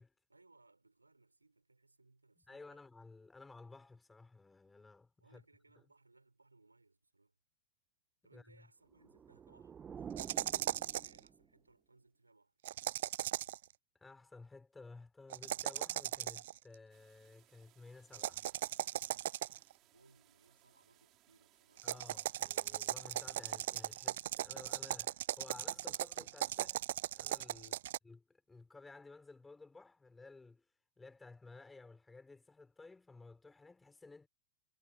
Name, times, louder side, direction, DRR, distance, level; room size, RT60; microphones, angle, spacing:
voice 1, 0.3-2.8 5.2-7.4 8.2-12.6 19.8-21.9 27.5-27.9, right 3 dB, 80° right, 7.0 m, -68 dB
voice 2, 2.5-5.4 8.3-8.7 14.0-18.5 21.8-26.8 27.1-27.7 28.0-30.6 31.0-34.3, left 3 dB, 10° left, 4.5 m, -55 dB
sound 1, 8.9-11.6, right 7 dB, 20° right, 1.2 m, -50 dB
sound 2, 10.2-11.2 12.6-13.6 15.3-16.6 18.1-19.7 21.8-28.0, right 13 dB, 55° right, 0.4 m, -38 dB
sound 3, 16.9-24.1, right 17 dB, 35° right, 6.3 m, -70 dB
figure-of-eight pair, 90°, 0 cm